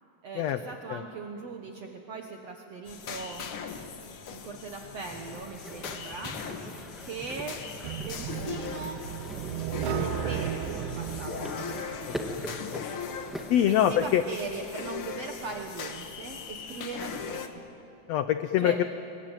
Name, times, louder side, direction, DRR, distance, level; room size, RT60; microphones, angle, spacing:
voice 1, 0.2-3.4 4.3-6.4 7.0-7.6 8.1-9.0 9.9-12.1 13.6-17.6 18.6-18.8, right 4 dB, 55° right, 3 dB, 2.2 m, -40 dB
sound 1, 2.9-17.5, left 6 dB, 55° left, 1.7 m, -39 dB
sound 2, 5.0-13.8, equal, ahead, 0.3 m, -42 dB
sound 3, 7.8-12.8, right 11 dB, 80° right, 2.6 m, -35 dB
voice 2, 12.3-12.8 13.5-14.2 18.1-18.8, left 11 dB, 85° left, 10 dB, 1.4 m, -25 dB
28.5 x 22.5 x 9.1 m, 2.9 s
omnidirectional pair, 3.9 m